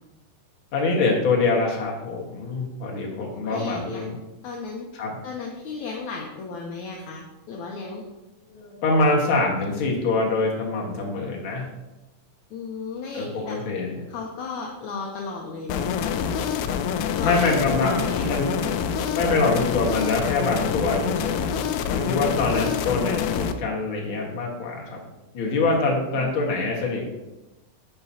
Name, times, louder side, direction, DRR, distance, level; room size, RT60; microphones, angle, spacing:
voice 1, 0.7-4.2 4.9-5.2 8.5-11.7 13.1-14.0 17.1-18.7 19.1-21.6 21.9-25.0 25.3-27.0, left 3 dB, 45° left, -2 dB, 2.0 m, -24 dB
voice 2, 3.2-4.0 4.4-4.9 5.2-8.0 12.5-13.6 14.1-16.3 17.2-17.4 17.7-18.3 25.9-26.3, left 4 dB, 70° left, 0 dB, 1.9 m, -35 dB
sound 1, 15.7-23.5, left 7 dB, 90° left, 1.7 m, -26 dB
10.5 x 7.8 x 2.9 m, 1.0 s
omnidirectional pair, 4.1 m